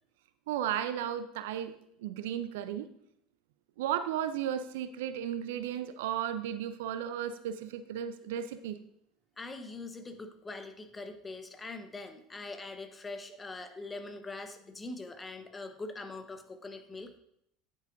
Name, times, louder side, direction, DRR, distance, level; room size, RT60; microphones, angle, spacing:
voice 1, 0.5-1.7 2.0-2.9 3.8-8.8, right 10 dB, 75° right, 12 dB, 0.5 m, -34 dB
voice 2, 9.4-17.2, left 3 dB, 20° left, 7 dB, 1.1 m, -43 dB
9.5 x 8.0 x 2.6 m, 0.72 s
hypercardioid pair, 75°, 0 cm